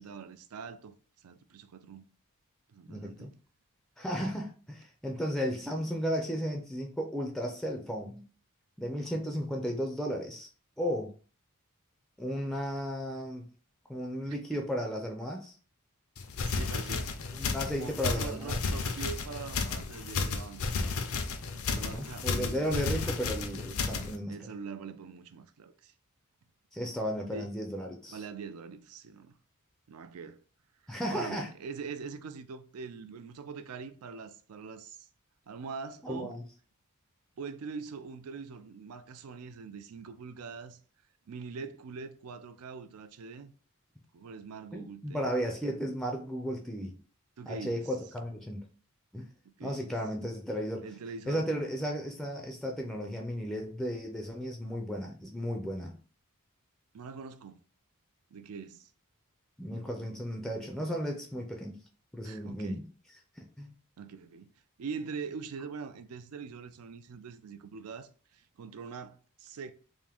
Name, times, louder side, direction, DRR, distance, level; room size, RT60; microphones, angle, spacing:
voice 1, 0.0-2.0 2.7-3.3 14.3-14.4 16.4-17.2 17.7-20.8 21.7-23.2 24.3-25.9 27.3-27.5 28.1-29.3 29.9-30.4 30.8-35.1 35.5-36.3 37.4-40.8 41.3-43.5 44.1-45.3 47.4-47.8 49.4-49.9 50.8-51.5 56.9-57.6 58.3-58.9 62.2-62.8 64.0-64.5 64.8-69.7, right 5 dB, 75° right, 0.4 m, -43 dB
voice 2, 2.9-3.3 4.0-8.2 8.8-10.5 10.8-11.1 12.2-13.5 13.9-15.5 17.3-18.6 21.8-24.4 26.7-28.2 30.9-31.5 36.0-36.4 44.7-47.0 47.5-48.6 49.1-49.3 49.6-50.8 51.3-55.9 59.6-61.8 62.1-62.8 63.6-63.7, equal, ahead, 0.4 m, -34 dB
sound 1, 16.2-24.2, left 4 dB, 70° left, 0.5 m, -33 dB
3.6 x 2.5 x 3.4 m
head